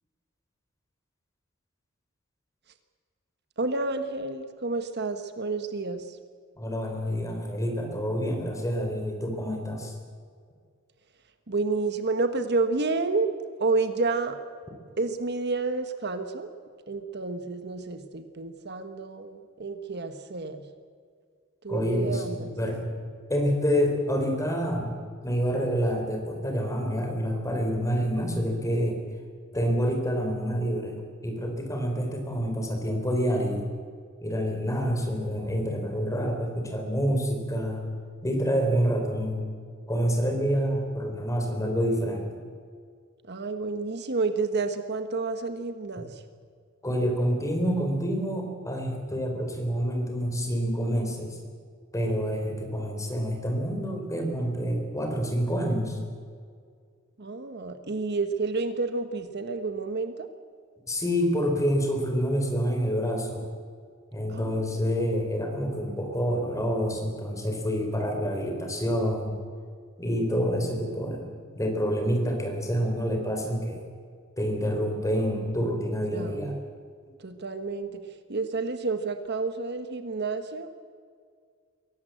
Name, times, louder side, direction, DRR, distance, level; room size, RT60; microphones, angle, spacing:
voice 1, 3.6-6.2 11.5-13.3 13.6-14.4 15.0-16.5 16.9-20.6 21.6-22.6 43.3-46.2 57.2-60.3 64.3-64.7 76.1-76.6 77.2-80.7, right 3 dB, 55° right, 8 dB, 1.3 m, -30 dB
voice 2, 6.6-9.9 21.7-22.9 23.3-24.9 25.2-29.0 29.5-31.0 31.2-33.6 34.2-37.9 38.2-39.5 39.9-42.4 46.0-46.1 46.8-51.4 51.9-56.0 60.9-63.5 64.1-69.4 70.0-71.3 71.5-73.8 74.4-76.6, equal, 15° left, 3 dB, 4.2 m, -27 dB
23.0 x 18.0 x 7.8 m, 2.1 s
head